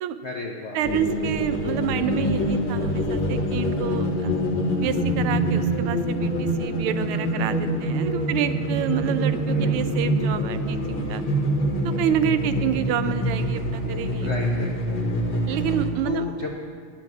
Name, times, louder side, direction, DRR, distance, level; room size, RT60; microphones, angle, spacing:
voice 1, 0.2-0.8 9.5-9.8 14.2-15.0 16.0-16.5, left 3 dB, 85° left, 1 dB, 0.6 m, -32 dB
voice 2, 0.7-4.3 4.8-11.2 11.8-14.3 15.5-16.2, right 10 dB, 80° right, 11 dB, 1.5 m, -28 dB
sound 1, 0.8-15.9, equal, 65° left, 1.8 m, -25 dB
9.6 x 9.3 x 6.0 m, 2.1 s
omnidirectional pair, 2.4 m